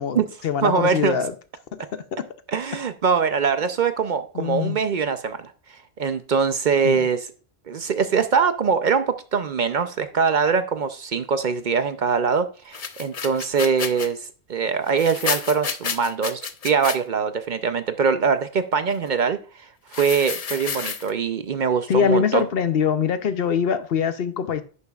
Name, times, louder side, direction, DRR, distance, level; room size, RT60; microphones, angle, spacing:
voice 1, 0.0-1.3 1.7-2.0 4.3-4.8 6.8-7.0 21.9-24.6, left 7 dB, 65° left, 0.9 m, -23 dB
voice 2, 0.6-1.2 2.5-5.4 5.7-7.3 7.7-14.2 14.5-22.4, right 5 dB, 55° right, 0.7 m, -23 dB
money shaken in bucket, 12.7-14.1 14.9-17.0 19.9-21.1, left 6 dB, 45° left, 0.6 m, -30 dB
11.0 x 6.9 x 2.4 m
omnidirectional pair, 1.1 m